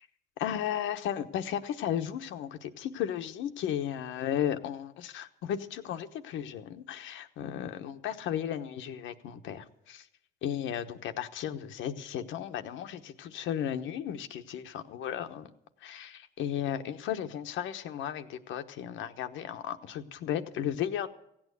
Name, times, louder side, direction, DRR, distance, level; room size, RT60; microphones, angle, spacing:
voice 1, 0.4-10.0 10.4-15.5 15.8-21.1, left 10 dB, 85° left, 8 dB, 1.1 m, -35 dB
16.0 x 8.9 x 8.1 m, 0.78 s
cardioid pair, 90°, 19 cm